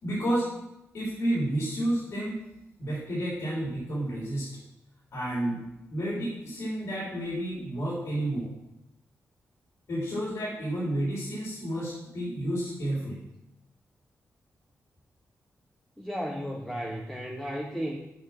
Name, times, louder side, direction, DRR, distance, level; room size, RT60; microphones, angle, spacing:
voice 1, 0.0-0.5 0.9-2.4 2.8-4.5 5.1-5.6 5.9-8.5 9.9-13.2, right 1 dB, 70° left, -8 dB, 3.9 m, -30 dB
voice 2, 16.0-18.0, equal, 5° left, -2 dB, 1.1 m, -34 dB
7.5 x 6.3 x 6.0 m, 0.87 s
cardioid pair, 95°, 5 cm